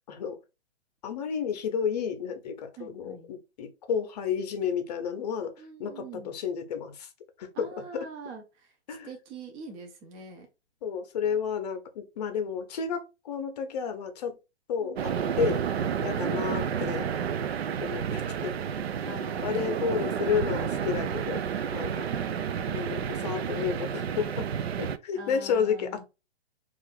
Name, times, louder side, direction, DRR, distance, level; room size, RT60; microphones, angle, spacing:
voice 1, 0.1-0.4 1.0-5.5 5.8-7.1 7.4-8.1 8.9-9.1 10.8-14.4 14.7-15.6 16.0-17.1 17.8-18.6 19.0-21.4 21.7-22.1 22.7-24.5 24.8-26.0, left 7 dB, 35° left, 0.7 m, -31 dB
voice 2, 2.8-3.3 5.6-6.3 7.5-8.7 9.0-10.5 14.8-15.1 16.2-16.7 19.0-20.7 22.0-23.2 25.1-26.0, right 4 dB, 15° right, 0.5 m, -44 dB
sound 1, 14.9-25.0, right 8 dB, 65° right, 0.5 m, -30 dB
3.3 x 2.5 x 4.4 m
figure-of-eight pair, 120°, 34 cm